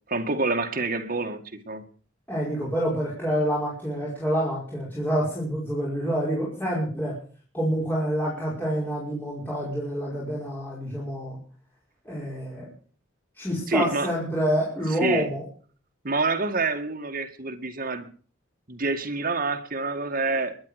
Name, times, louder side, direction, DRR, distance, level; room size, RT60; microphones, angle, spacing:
voice 1, 0.1-1.8 13.7-14.1 15.0-15.3 16.0-18.1 18.7-20.6, right 3 dB, 45° right, 4 dB, 1.9 m, -27 dB
voice 2, 2.3-7.1 7.5-11.4 12.1-12.7 13.4-15.4, equal, 10° left, -6 dB, 5.3 m, -27 dB
22.0 x 9.6 x 6.6 m, 0.42 s
head